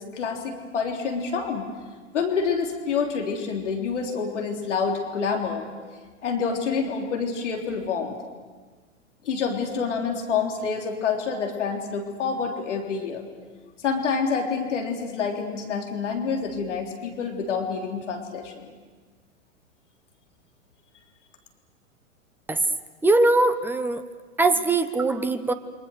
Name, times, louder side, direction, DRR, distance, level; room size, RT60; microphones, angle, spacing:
voice 1, 0.0-1.7 2.1-5.7 6.2-8.1 9.2-13.2 13.8-18.7, left 5 dB, 60° left, 2 dB, 3.5 m, -27 dB
voice 2, 23.0-24.0 24.4-25.5, right 2 dB, 5° right, 13 dB, 0.9 m, -21 dB
29.0 x 24.0 x 6.6 m, 1.4 s
figure-of-eight pair, 100°, 40 cm